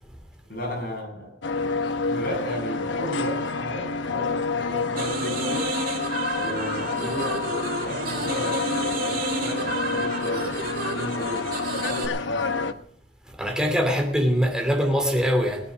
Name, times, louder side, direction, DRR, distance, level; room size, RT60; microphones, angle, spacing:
voice 1, 0.5-1.3 2.0-5.7 6.4-12.7, equal, 50° left, 7.7 m, -34 dB
sound 1, 1.4-12.7, left 4 dB, 90° left, 1.0 m, -28 dB
sound 2, 4.9-12.1, right 3 dB, 50° right, 2.2 m, -31 dB
voice 2, 13.4-15.7, equal, 5° right, 2.8 m, -23 dB
19.0 x 9.6 x 6.3 m
head